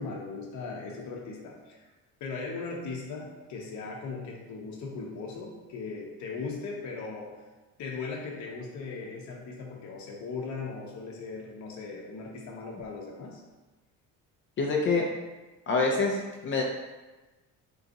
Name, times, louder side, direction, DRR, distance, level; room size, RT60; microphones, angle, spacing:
voice 1, 0.0-1.9 2.2-7.3 7.8-13.4, left 4 dB, 55° left, -1 dB, 0.8 m, -38 dB
voice 2, 14.6-15.1 15.7-16.6, left 3 dB, 35° left, -1 dB, 0.4 m, -26 dB
3.9 x 2.4 x 3.9 m, 1.2 s
cardioid pair, 135°, 35 cm